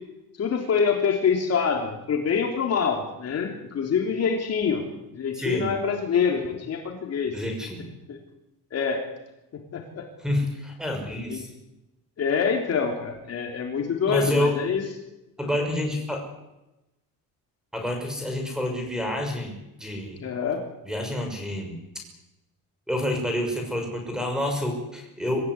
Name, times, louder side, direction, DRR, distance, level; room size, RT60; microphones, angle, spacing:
voice 1, 0.4-4.8 5.1-7.3 8.1-8.2 8.7-9.0 9.7-10.0 11.3-11.5 12.2-14.8 20.2-20.6, left 6 dB, 40° left, 2 dB, 3.7 m, -25 dB
voice 2, 5.3-5.7 7.3-7.8 10.2-11.5 14.1-14.5 15.4-16.2 17.7-20.2 20.8-21.8 22.9-25.4, left 1 dB, ahead, 3 dB, 6.1 m, -28 dB
25.5 x 15.5 x 9.9 m, 0.94 s
cardioid pair, 175°, 37 cm